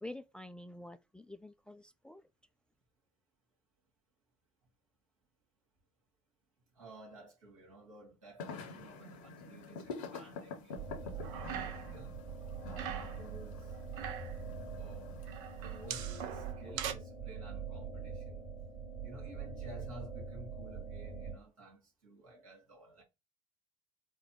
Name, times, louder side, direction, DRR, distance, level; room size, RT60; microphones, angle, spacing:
voice 1, 0.0-2.2, left 1 dB, 5° left, 0.3 m, -48 dB
voice 2, 6.7-12.2 12.6-13.7 14.8-15.2 15.6-18.4 19.0-23.0, right 2 dB, 75° right, 1.8 m, -54 dB
sound 1, 8.4-16.5, left 4 dB, 65° left, 0.9 m, -48 dB
sound 2, 10.8-21.4, right 5 dB, 45° right, 2.0 m, -43 dB
sound 3, 11.2-12.0 12.3-13.2 13.7-14.4 15.3-16.9, right 10 dB, 60° right, 0.6 m, -42 dB
3.9 x 2.1 x 4.3 m
figure-of-eight pair, 60°, 17 cm